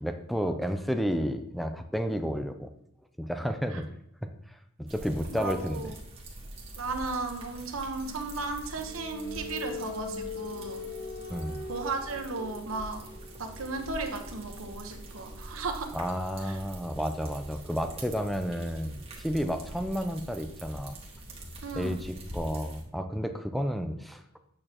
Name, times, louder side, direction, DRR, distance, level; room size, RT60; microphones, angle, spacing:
voice 1, 0.0-2.7 3.2-3.8 4.2-5.9 11.3-11.6 15.9-21.0 21.8-24.2, equal, ahead, 7 dB, 0.5 m, -31 dB
sound 1, 4.9-22.8, right 1 dB, 30° right, 1.5 m, -45 dB
voice 2, 5.3-5.9 6.8-10.8 11.7-13.0 13.4-15.9 16.4-16.6 21.6-22.0, right 3 dB, 80° right, 5 dB, 1.1 m, -35 dB
sound 2, 8.0-19.5, left 4 dB, 50° left, 0.9 m, -44 dB
8.7 x 6.6 x 2.9 m, 0.77 s
head